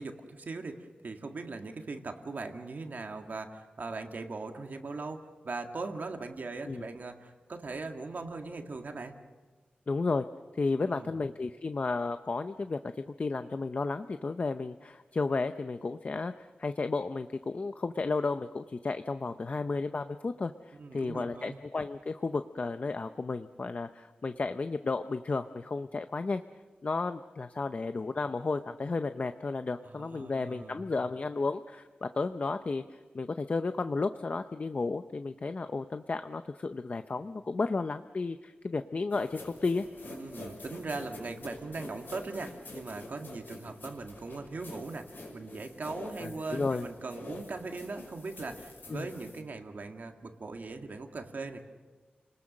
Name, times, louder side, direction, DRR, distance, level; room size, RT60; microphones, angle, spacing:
voice 1, 0.0-9.2 10.8-11.2 20.7-21.6 29.8-30.8 40.0-51.6, right 3 dB, 60° right, 4 dB, 1.9 m, -40 dB
voice 2, 9.9-10.2 10.6-26.4 26.8-32.8 33.1-39.8 46.2-46.9 48.9-49.1, left 3 dB, 45° left, 9 dB, 0.6 m, -33 dB
sound 1, 39.1-49.4, left 2 dB, 80° left, 5.6 m, -47 dB
30.0 x 20.0 x 6.5 m, 1.3 s
wide cardioid pair, 105°, 3 cm